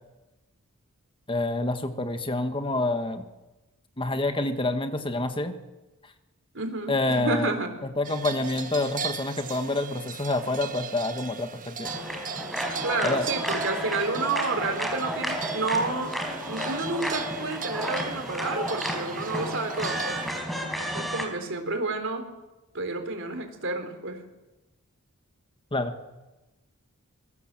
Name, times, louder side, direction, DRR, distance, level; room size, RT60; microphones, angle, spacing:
voice 1, 1.3-3.2 4.0-5.5 6.9-7.5 8.0-11.9 13.0-13.3 25.7-25.9, left 2 dB, 25° left, 8 dB, 1.5 m, -27 dB
voice 2, 6.5-7.7 12.8-16.2 16.5-20.2 20.6-22.3 22.7-24.2, right 3 dB, 60° right, 7 dB, 3.8 m, -30 dB
sound 1, 8.0-20.4, right 6 dB, 35° right, 1.3 m, -38 dB
sound 2, 11.8-21.2, equal, ahead, 4.5 m, -32 dB
25.5 x 23.0 x 7.6 m, 1.1 s
head